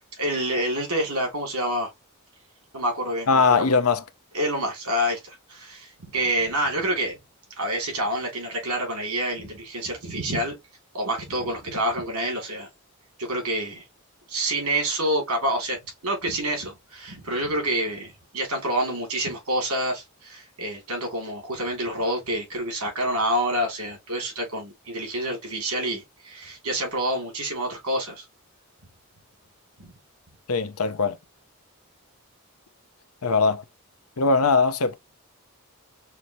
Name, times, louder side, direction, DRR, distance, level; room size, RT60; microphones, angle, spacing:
voice 1, 0.2-1.9 2.7-3.7 4.3-7.1 7.6-10.6 10.9-12.7 13.2-13.8 14.3-28.2 29.8-29.9, right 1 dB, 80° right, 3.2 m, -27 dB
voice 2, 3.3-4.0 30.5-31.2 33.2-33.6 34.2-34.9, left 4 dB, 80° left, 0.7 m, -20 dB
5.7 x 2.8 x 3.1 m
head